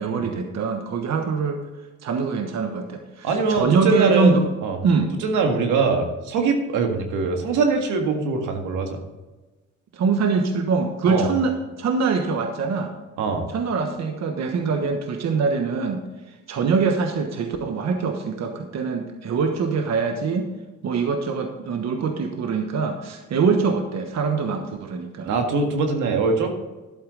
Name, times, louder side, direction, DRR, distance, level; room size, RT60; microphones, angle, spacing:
voice 1, 0.0-1.6 2.0-4.5 4.8-5.1 9.9-12.9 13.5-16.0 16.5-20.5 20.8-25.3, right 4 dB, 60° right, 5 dB, 1.3 m, -23 dB
voice 2, 3.2-4.4 4.6-4.8 5.2-9.0 11.1-11.3 13.2-13.5 25.2-26.5, right 4 dB, 85° right, 4 dB, 1.8 m, -22 dB
12.0 x 8.0 x 4.0 m, 1.2 s
cardioid pair, 90°, 30 cm